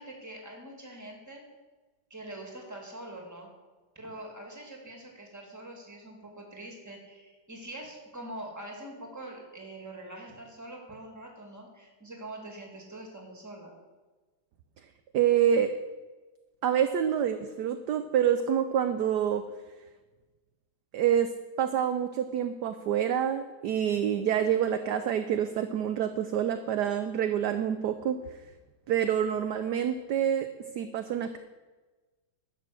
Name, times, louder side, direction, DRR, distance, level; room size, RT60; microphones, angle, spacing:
voice 1, 0.0-1.4 2.1-3.5 4.0-13.7, right 1 dB, 10° right, 1 dB, 2.1 m, -44 dB
voice 2, 15.1-15.8 16.6-19.4 20.9-21.3 21.6-28.2 28.9-30.5 30.8-31.4, right 9 dB, 70° right, 8 dB, 1.1 m, -27 dB
11.0 x 6.8 x 7.5 m, 1.2 s
omnidirectional pair, 2.1 m